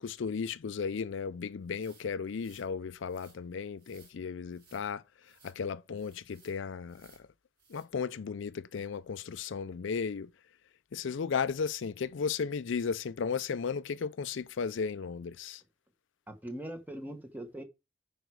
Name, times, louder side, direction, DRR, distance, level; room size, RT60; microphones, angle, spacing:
voice 1, 0.0-7.3 7.7-10.3 10.9-15.6, left 5 dB, 60° left, 0.4 m, -35 dB
sound 1, 1.7-2.7 3.0-3.4 3.8-4.2 4.5-4.8 5.2-5.6 6.0-6.6 6.9-7.3 7.6-7.9, right 4 dB, 45° right, 5.6 m, -62 dB
voice 2, 16.3-17.6, right 1 dB, 10° right, 1.2 m, -41 dB
9.1 x 4.9 x 4.7 m
head